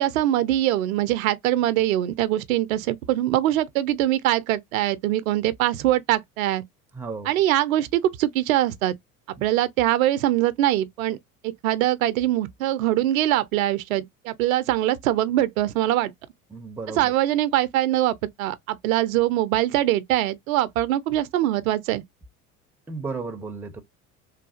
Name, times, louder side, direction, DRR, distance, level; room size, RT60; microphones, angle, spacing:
voice 1, 0.0-6.6 7.3-9.0 9.4-11.2 11.4-16.1 17.0-22.0, right 14 dB, 65° right, 0.5 m, -23 dB
voice 2, 6.9-7.3 16.5-17.1 22.9-23.8, right 4 dB, 5° right, 0.4 m, -34 dB
3.2 x 2.3 x 2.4 m
figure-of-eight pair, 65°, 44 cm